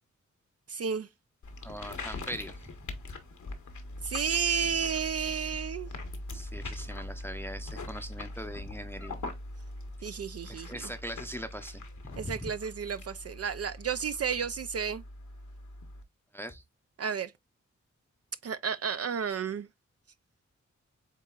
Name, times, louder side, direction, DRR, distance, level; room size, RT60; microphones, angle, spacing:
voice 1, 0.7-1.1 4.0-5.9 10.0-10.9 12.2-15.0 17.0-17.3 18.4-19.7, right 7 dB, 55° right, 0.4 m, -32 dB
sound 1, 1.4-16.0, left 2 dB, 70° left, 1.1 m, -42 dB
voice 2, 1.6-2.7 6.3-9.2 10.5-11.8 12.1-12.5 16.3-16.6, equal, 5° left, 0.6 m, -41 dB
8.2 x 2.8 x 2.3 m
cardioid pair, 40°, 30 cm